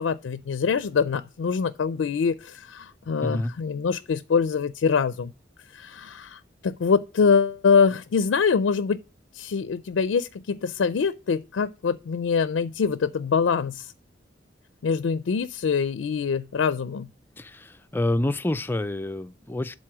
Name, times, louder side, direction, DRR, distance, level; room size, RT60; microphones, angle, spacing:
voice 1, 0.0-5.3 5.7-9.0 9.3-13.9 14.8-17.1, left 5 dB, 85° left, 0.4 m, -24 dB
voice 2, 3.2-3.5 17.4-19.8, left 1 dB, 10° left, 0.4 m, -28 dB
7.6 x 4.0 x 6.1 m
head